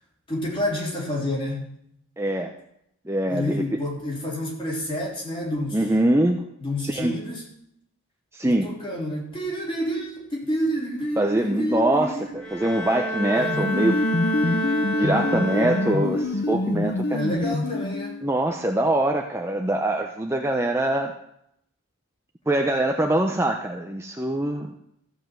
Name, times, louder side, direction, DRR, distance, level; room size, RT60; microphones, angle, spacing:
voice 1, 0.3-1.7 3.3-5.8 6.6-7.4 8.4-12.3 17.1-18.1, equal, 25° left, -4 dB, 3.5 m, -29 dB
voice 2, 2.2-2.5 3.1-3.6 5.7-6.4 6.8-7.2 8.3-8.7 11.2-14.0 14.4-14.6 15.0-17.2 18.2-21.1 22.5-24.8, right 1 dB, 10° right, 2 dB, 0.6 m, -23 dB
Bowed string instrument, 12.3-16.4, equal, 5° left, 2.0 m, -29 dB
sound 1, 13.4-18.3, left 2 dB, 50° left, 0.6 m, -26 dB
14.5 x 5.6 x 7.5 m, 0.76 s
head